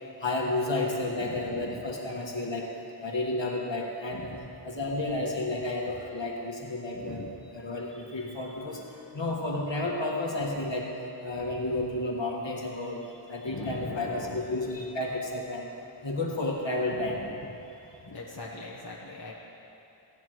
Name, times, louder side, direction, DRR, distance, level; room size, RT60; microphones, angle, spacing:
voice 1, 0.2-2.7 3.0-4.3 4.6-8.8 9.1-10.8 11.2-13.0 13.3-15.7 16.0-17.3, left 2 dB, 65° left, -2 dB, 1.6 m, -31 dB
voice 2, 6.9-7.4 13.5-14.4 16.9-17.5 18.1-19.3, left 3 dB, 50° left, -4 dB, 1.1 m, -41 dB
17.0 x 9.6 x 3.1 m, 2.9 s
wide cardioid pair, 60°, 47 cm